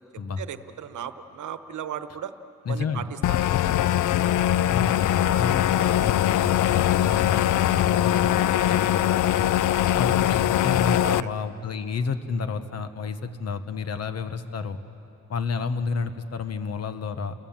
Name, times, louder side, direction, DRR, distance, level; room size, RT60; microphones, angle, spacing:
voice 1, 0.4-2.3 2.7-3.5 11.0-11.3, right 9 dB, 80° right, 10 dB, 1.1 m, -36 dB
voice 2, 2.7-3.0 4.7-9.5 10.0-14.8 15.3-17.3, left 5 dB, 55° left, 10 dB, 1.2 m, -30 dB
sound 1, 3.2-11.2, left 12 dB, 85° left, 0.5 m, -22 dB
30.0 x 22.5 x 7.3 m, 3.0 s
wide cardioid pair, 170°, 30 cm